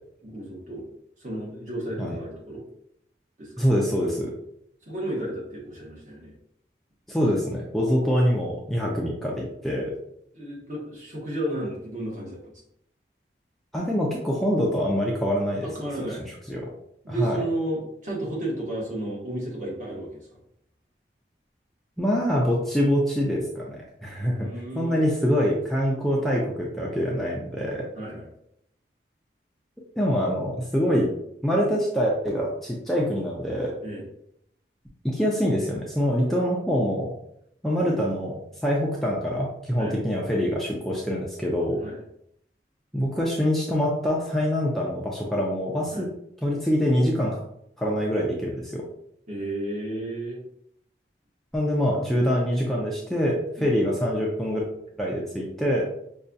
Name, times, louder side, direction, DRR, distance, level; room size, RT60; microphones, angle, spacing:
voice 1, 0.2-0.9 1.2-2.6 3.4-3.5 4.9-6.3 8.7-8.9 10.3-12.5 15.6-16.2 16.5-16.6 17.0-20.2 24.4-25.1 27.9-28.3 33.8-34.1 39.8-40.0 41.8-42.0 45.9-46.1 49.3-50.4 53.6-53.7, right 1 dB, 45° right, -4 dB, 1.3 m, -33 dB
voice 2, 3.6-4.3 7.1-9.9 13.7-15.7 16.5-16.6 17.1-17.4 22.0-24.5 24.8-27.8 30.0-31.1 31.4-33.7 35.0-37.1 37.6-41.8 42.9-46.1 46.4-47.4 47.8-48.8 51.5-54.7 55.0-55.9, equal, ahead, -3 dB, 0.4 m, -25 dB
5.3 x 2.3 x 2.6 m, 0.75 s
head